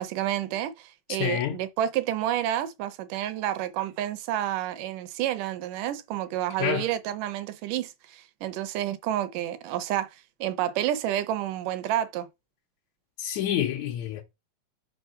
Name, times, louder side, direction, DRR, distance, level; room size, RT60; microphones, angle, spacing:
voice 1, 0.0-10.1 10.4-12.3, right 12 dB, 80° right, 2.0 m, -29 dB
voice 2, 1.2-1.6 6.6-6.9 13.2-14.2, left 10 dB, 75° left, 1.8 m, -28 dB
5.6 x 3.8 x 5.5 m
omnidirectional pair, 3.9 m